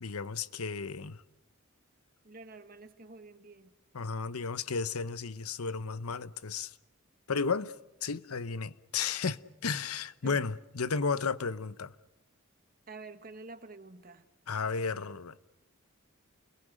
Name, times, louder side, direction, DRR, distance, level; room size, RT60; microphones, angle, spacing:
voice 1, 0.0-1.2 3.9-6.8 7.3-11.9 14.5-15.4, left 5 dB, 90° left, 0.8 m, -33 dB
voice 2, 2.2-3.7 10.2-10.4 12.9-14.2, right 3 dB, 40° right, 1.5 m, -48 dB
29.5 x 22.0 x 6.5 m
head